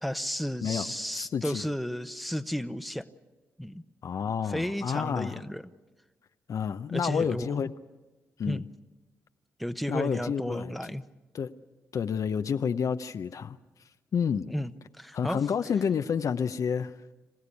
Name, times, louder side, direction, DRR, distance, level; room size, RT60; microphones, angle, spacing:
voice 1, 0.0-3.1 3.6-3.8 4.4-5.6 6.9-7.7 8.4-8.6 9.6-11.0 14.5-15.4, equal, ahead, 10 dB, 1.1 m, -33 dB
voice 2, 1.1-1.7 4.0-5.4 6.5-7.7 8.4-8.6 9.9-10.9 11.3-11.5 11.9-13.6 14.1-14.5 15.1-16.9, left 7 dB, 60° left, 9 dB, 0.8 m, -29 dB
26.5 x 15.5 x 8.5 m, 1.2 s
supercardioid pair, 50°, 6 cm